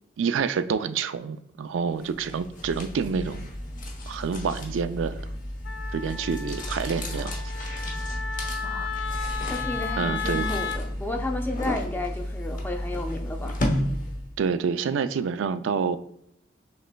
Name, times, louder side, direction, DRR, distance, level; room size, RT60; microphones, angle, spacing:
voice 1, 0.2-3.5 4.1-5.3 5.9-7.3 10.0-10.5 14.4-16.0, right 6 dB, 85° right, 12 dB, 0.3 m, -27 dB
sound 1, 2.0-14.4, left 1 dB, 45° left, 0.9 m, -32 dB
Wind instrument woodwind instrument, 5.7-10.8, left 6 dB, 70° left, 0.3 m, -34 dB
voice 2, 9.5-13.6, left 2 dB, 10° left, 3 dB, 0.6 m, -32 dB
6.2 x 3.2 x 2.2 m, 0.75 s
head